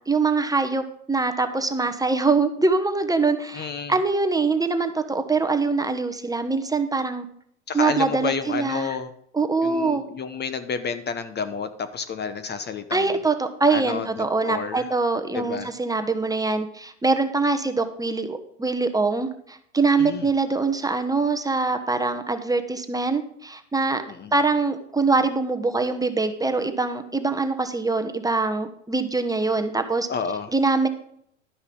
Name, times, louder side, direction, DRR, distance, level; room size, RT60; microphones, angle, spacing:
voice 1, 0.1-7.2 7.7-9.0 9.3-10.0 12.9-24.0 24.3-30.1 30.5-30.9, right 3 dB, 10° right, 8 dB, 1.1 m, -23 dB
voice 2, 3.5-4.0 7.7-9.1 9.6-13.2 13.7-14.9 15.3-15.7 20.0-20.3 24.1-24.3 30.1-30.5, left 6 dB, 30° left, 11 dB, 1.0 m, -30 dB
12.0 x 9.5 x 3.8 m, 0.68 s
hypercardioid pair, 90°, 35 cm